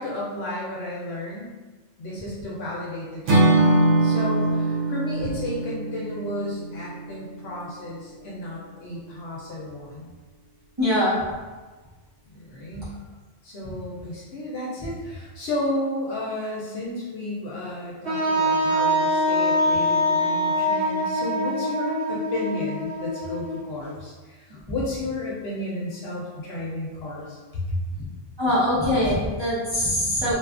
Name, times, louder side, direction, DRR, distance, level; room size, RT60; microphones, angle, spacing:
voice 1, 0.0-1.5 2.0-3.7 4.0-10.1 12.3-12.9 13.4-27.8, left 1 dB, 65° left, -5 dB, 0.8 m, -33 dB
Acoustic guitar / Strum, 3.3-7.4, right 2 dB, 85° right, 1.0 m, -22 dB
voice 2, 10.8-11.2 28.4-30.3, left 1 dB, 25° right, -12 dB, 0.7 m, -22 dB
Wind instrument woodwind instrument, 18.0-23.8, equal, 60° right, 1.2 m, -24 dB
2.6 x 2.3 x 2.4 m, 1.3 s
omnidirectional pair, 1.3 m